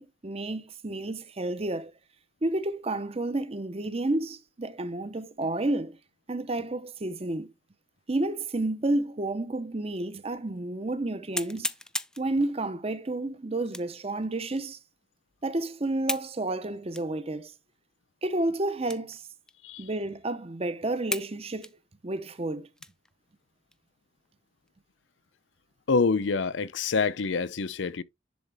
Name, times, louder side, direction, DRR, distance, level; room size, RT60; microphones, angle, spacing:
voice 1, 0.0-1.9 2.4-6.0 6.3-7.5 8.1-11.7 12.2-14.8 15.4-17.5 18.2-19.3 19.8-21.8 22.0-22.7, right 2 dB, 30° right, 0.7 m, -30 dB
sound 1, 10.0-10.1 10.6-10.7 11.3-12.3 13.7-14.0 14.6-14.7 16.1-16.3 16.9-17.1 17.7-17.8 18.8-19.2 19.5-19.6 20.2-20.3 21.1-21.3 21.6-23.1 23.6-23.8 24.3-24.7, left 2 dB, 5° left, 0.3 m, -35 dB
voice 2, 25.9-28.0, left 4 dB, 70° left, 0.5 m, -26 dB
10.5 x 4.1 x 3.4 m
head